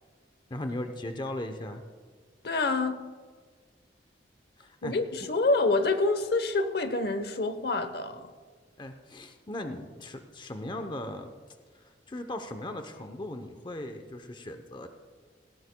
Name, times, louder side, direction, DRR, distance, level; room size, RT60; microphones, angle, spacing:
voice 1, 0.5-1.8 4.6-4.9 5.2-5.3 8.8-11.3 11.7-14.9, left 1 dB, 25° left, 7 dB, 0.7 m, -38 dB
voice 2, 2.4-3.0 4.8-8.3, left 3 dB, 60° left, 10 dB, 0.9 m, -27 dB
18.5 x 17.5 x 2.2 m, 1.5 s
head